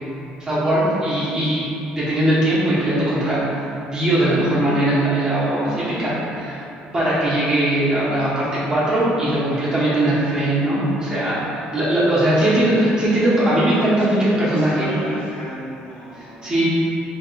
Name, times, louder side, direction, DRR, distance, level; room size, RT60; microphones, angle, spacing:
voice 1, 0.4-1.6 1.9-6.6 6.9-14.9 16.2-16.7, right 1 dB, 25° right, -9 dB, 1.1 m, -20 dB
voice 2, 12.9-13.3 13.9-14.2 14.5-16.7, equal, 80° left, -10 dB, 1.3 m, -35 dB
3.6 x 3.0 x 2.4 m, 2.6 s
cardioid pair, 105°, 3 cm